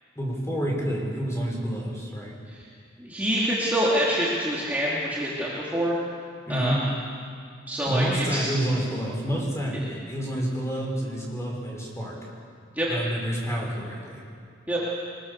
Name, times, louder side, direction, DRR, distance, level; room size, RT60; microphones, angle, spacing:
voice 1, 0.2-2.3 6.5-6.8 7.8-12.2 12.9-14.2, right 1 dB, 15° left, -2 dB, 5.5 m, -28 dB
voice 2, 3.0-5.9 6.5-6.8 7.7-8.5 12.8-12.9 14.7-14.8, equal, 10° right, -7 dB, 3.0 m, -26 dB
23.5 x 22.0 x 6.9 m, 2.2 s
head